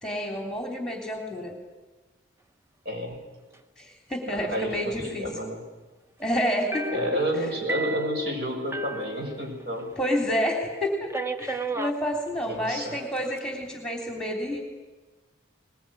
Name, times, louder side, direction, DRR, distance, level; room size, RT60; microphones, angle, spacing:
voice 1, 0.0-1.5 3.8-5.3 6.2-6.9 10.0-11.1 11.4-14.6, equal, 5° left, 2 dB, 3.2 m, -29 dB
voice 2, 2.8-3.2 4.3-5.6 6.9-9.9 12.4-13.0, equal, 55° right, 1 dB, 6.3 m, -30 dB
sound 1, 6.7-9.9 10.2-10.3 11.1-12.0 12.9-13.4, right 3 dB, 15° right, 0.7 m, -34 dB
21.0 x 20.5 x 9.8 m, 1.2 s
head